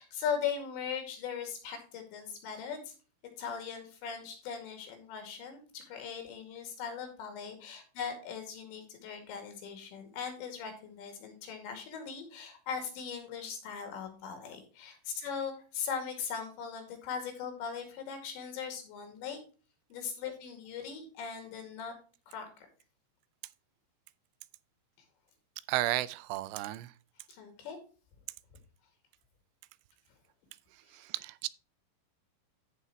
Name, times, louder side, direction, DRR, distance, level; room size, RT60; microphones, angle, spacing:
voice 1, 0.0-2.9 3.4-19.4 19.9-21.9 22.3-22.7 27.3-27.8, left 7 dB, 70° left, 4.5 m, -39 dB
voice 2, 25.7-26.9 31.2-31.5, right 17 dB, 85° right, 3.1 m, -32 dB
14.5 x 5.6 x 3.0 m
omnidirectional pair, 5.5 m